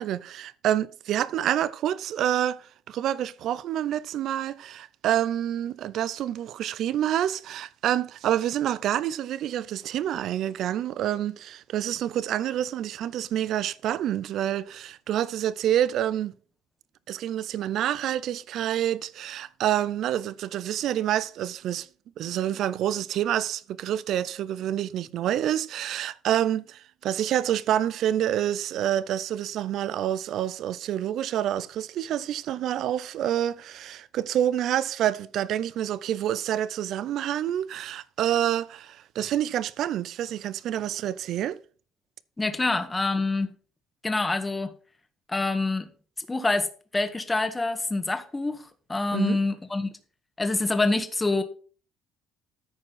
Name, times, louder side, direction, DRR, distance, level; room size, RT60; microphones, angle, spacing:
voice 1, 0.0-16.3 17.1-21.9 22.2-41.6 49.1-49.4, right 11 dB, 65° right, 0.6 m, -27 dB
voice 2, 42.4-43.5 44.0-44.7 45.3-45.9 46.2-46.7 46.9-49.9 50.4-51.4, left 2 dB, 15° left, 1.6 m, -26 dB
13.5 x 5.0 x 5.8 m
supercardioid pair, 85°, 0 cm